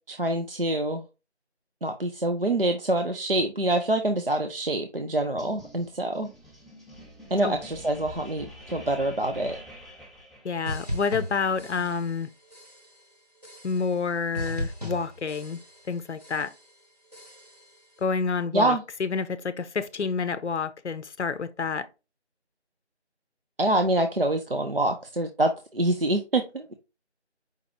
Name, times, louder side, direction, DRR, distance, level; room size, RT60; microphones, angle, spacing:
voice 1, 0.1-1.0 1.8-6.3 7.3-9.6 18.5-18.8 23.6-26.7, right 1 dB, 55° right, 0.5 m, -26 dB
sound 1, 5.4-11.0, equal, ahead, 0.5 m, -47 dB
voice 2, 10.4-12.3 13.6-15.6 15.9-16.5 18.0-21.9, left 5 dB, 80° left, 0.6 m, -28 dB
sound 2, 10.7-12.2 12.5-13.0 13.4-14.1 14.3-15.9 16.2-16.7 17.1-17.8, equal, 35° right, 1.1 m, -37 dB
5.0 x 2.8 x 3.0 m
figure-of-eight pair, 180°, 34 cm